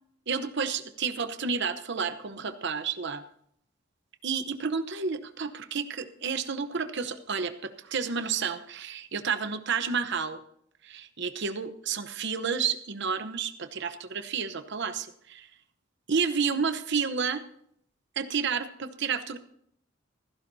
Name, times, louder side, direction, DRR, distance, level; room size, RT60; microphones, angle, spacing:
voice 1, 0.3-3.2 4.2-10.4 10.8-15.5 16.1-17.4 18.2-19.4, right 6 dB, 60° right, 10 dB, 0.9 m, -30 dB
15.5 x 15.0 x 2.7 m, 0.68 s
head